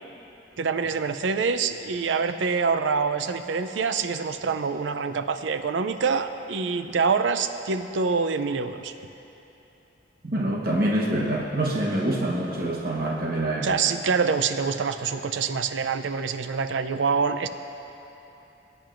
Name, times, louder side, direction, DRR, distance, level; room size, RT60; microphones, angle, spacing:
voice 1, 0.6-8.9 13.6-17.5, right 5 dB, 90° right, 10 dB, 0.5 m, -25 dB
voice 2, 10.2-13.8, right 1 dB, 55° right, -2 dB, 1.1 m, -26 dB
19.5 x 8.8 x 2.6 m, 2.9 s
head